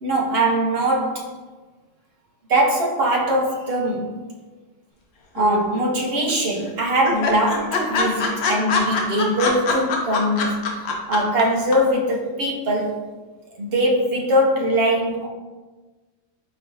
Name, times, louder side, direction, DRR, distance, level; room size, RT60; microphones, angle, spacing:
voice 1, 0.0-1.3 2.5-4.2 5.3-10.6 11.1-13.0 13.6-15.3, right 1 dB, 55° right, -1 dB, 0.9 m, -21 dB
sound 1, 5.4-6.0 6.3-6.4 6.7-6.8 7.0-11.4 11.7-11.8, left 4 dB, 65° left, 0.9 m, -23 dB
4.3 x 4.1 x 2.7 m, 1.3 s
omnidirectional pair, 1.3 m